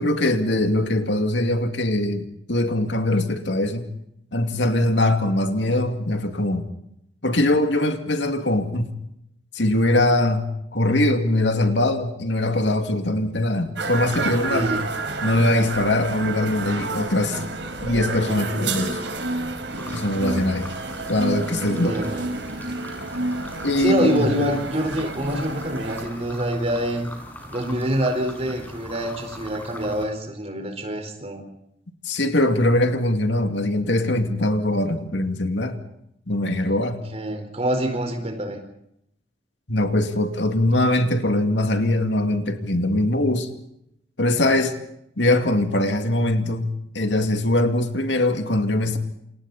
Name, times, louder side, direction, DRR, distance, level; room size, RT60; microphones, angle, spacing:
voice 1, 0.0-3.9 4.3-6.7 7.2-8.9 9.5-14.7 15.2-17.4 17.8-19.0 19.9-20.7 21.1-22.0 23.6-24.3 32.0-35.8 36.3-37.0 39.7-43.5 44.2-44.8 45.2-49.0, left 1 dB, 75° left, 2.4 m, -22 dB
sound 1, 13.8-26.1, right 2 dB, 75° right, 4.9 m, -30 dB
voice 2, 14.5-14.9 18.2-18.7 21.7-22.2 23.8-27.0 27.5-31.4 37.1-38.6, right 1 dB, 35° right, 4.6 m, -26 dB
sound 2, 19.7-30.1, left 1 dB, 10° left, 6.7 m, -40 dB
28.5 x 27.5 x 4.3 m
head